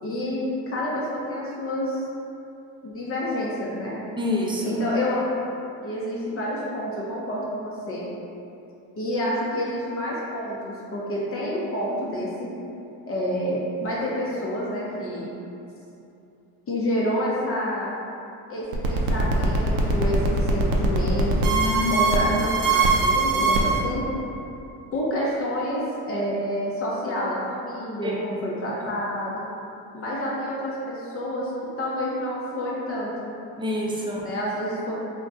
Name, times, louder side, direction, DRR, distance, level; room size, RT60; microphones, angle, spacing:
voice 1, 0.0-0.4 0.7-2.1 2.8-4.0 4.6-5.3 5.8-8.1 9.0-12.5 13.1-15.3 16.7-17.9 18.5-24.0 24.9-29.5 29.9-31.5 31.8-33.1 34.2-34.9, equal, 40° left, -6 dB, 0.6 m, -28 dB
voice 2, 4.2-4.8 21.5-22.1 28.0-28.2 33.6-34.3, left 1 dB, 15° right, -3 dB, 0.4 m, -27 dB
sound 1, 18.7-23.8, right 3 dB, 65° right, 0.5 m, -22 dB
2.5 x 2.1 x 3.6 m, 2.7 s
cardioid pair, 90°, 36 cm